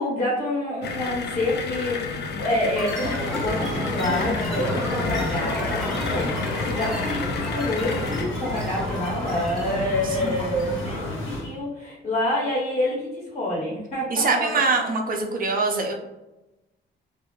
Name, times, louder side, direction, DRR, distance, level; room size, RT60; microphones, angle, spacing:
voice 1, 0.0-14.7, left 1 dB, 35° left, -5 dB, 1.2 m, -27 dB
sound 1, 0.8-8.3, left 5 dB, 60° left, 0.4 m, -32 dB
sound 2, 2.7-11.0, left 1 dB, ahead, 1.0 m, -32 dB
sound 3, 3.0-11.5, left 2 dB, 80° left, 0.8 m, -32 dB
voice 2, 14.1-15.9, right 4 dB, 45° right, 3 dB, 0.6 m, -23 dB
2.3 x 2.0 x 3.1 m, 0.97 s
cardioid pair, 90°, 20 cm